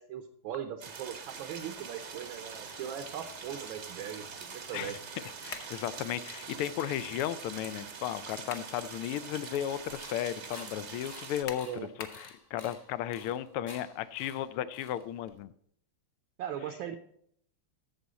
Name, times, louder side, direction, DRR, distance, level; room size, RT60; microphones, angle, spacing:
voice 1, 0.0-4.9 11.7-11.9 16.4-17.0, right 9 dB, 70° right, 7 dB, 1.5 m, -39 dB
sound 1, 0.8-11.4, right 5 dB, 50° right, 0.9 m, -44 dB
voice 2, 5.4-11.7 12.2-15.5, left 11 dB, 85° left, 15 dB, 1.5 m, -35 dB
sound 2, 5.5-5.8 8.1-8.8 9.3-9.4 11.5-12.3, left 6 dB, 60° left, 1.6 m, -43 dB
sound 3, 9.7-15.4, left 2 dB, 35° left, 0.4 m, -52 dB
12.5 x 7.0 x 4.1 m, 0.67 s
omnidirectional pair, 2.4 m